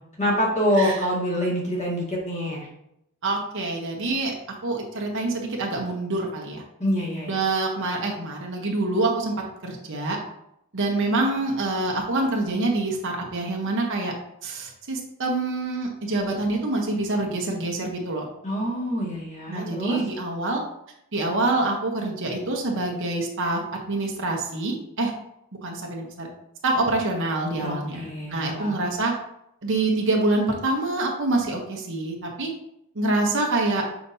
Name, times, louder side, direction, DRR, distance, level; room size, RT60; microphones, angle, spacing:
voice 1, 0.2-2.7 6.8-7.4 18.4-20.0 27.6-28.8, equal, 35° left, -4 dB, 2.0 m, -26 dB
voice 2, 3.2-4.3 4.6-6.6 7.2-9.3 9.6-10.2 10.7-14.1 14.4-18.3 19.5-20.6 21.1-23.6 23.9-25.1 25.6-26.3 26.6-29.1 29.6-32.5 32.9-33.8, right 2 dB, 60° right, 0 dB, 1.0 m, -26 dB
7.1 x 5.0 x 2.7 m, 0.78 s
head